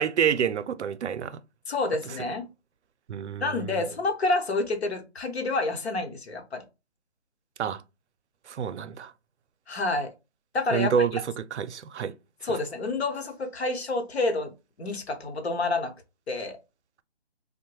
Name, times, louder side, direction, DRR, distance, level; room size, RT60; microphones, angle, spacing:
voice 1, 0.0-1.4 3.1-3.8 7.6-7.8 8.5-9.1 10.7-12.1 12.4-12.6, right 7 dB, 85° right, 0.5 m, -28 dB
voice 2, 1.7-2.5 3.4-6.6 9.7-10.1 10.5-11.2 12.4-14.5 14.8-15.9 16.3-16.6, left 3 dB, 70° left, 0.9 m, -28 dB
3.0 x 2.1 x 2.9 m
hypercardioid pair, 170°, 33 cm